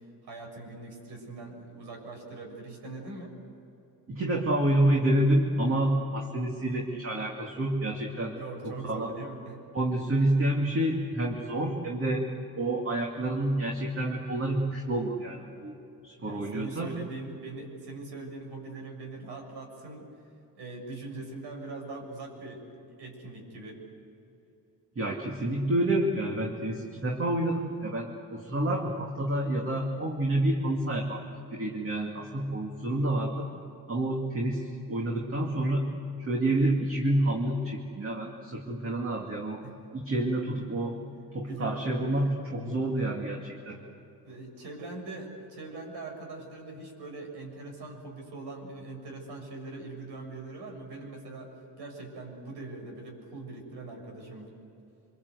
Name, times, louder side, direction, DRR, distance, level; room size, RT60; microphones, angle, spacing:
voice 1, 0.2-3.3 8.4-9.6 16.2-20.1 20.5-22.6 23.0-23.8 39.6-39.7 41.4-42.2 44.3-51.5 51.8-54.5, right 3 dB, 80° right, 2 dB, 6.5 m, -42 dB
voice 2, 4.1-8.4 8.6-9.1 9.7-12.2 12.6-15.8 16.0-16.9 25.0-31.2 31.5-33.5 33.9-35.9 36.2-39.6 39.9-41.0 41.3-43.8, right 1 dB, 35° right, 0 dB, 2.4 m, -28 dB
25.5 x 23.5 x 8.2 m, 2.8 s
cardioid pair, 120°, 40 cm